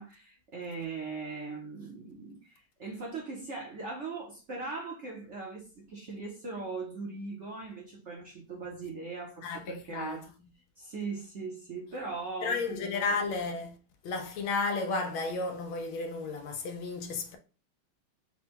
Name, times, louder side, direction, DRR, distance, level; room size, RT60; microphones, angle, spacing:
voice 1, 0.0-10.2 10.8-13.2, right 4 dB, 50° right, 1.0 m, -40 dB
voice 2, 9.4-10.2 12.4-13.8 14.0-17.4, left 3 dB, 80° left, 1.5 m, -33 dB
4.5 x 2.3 x 4.4 m
omnidirectional pair, 2.2 m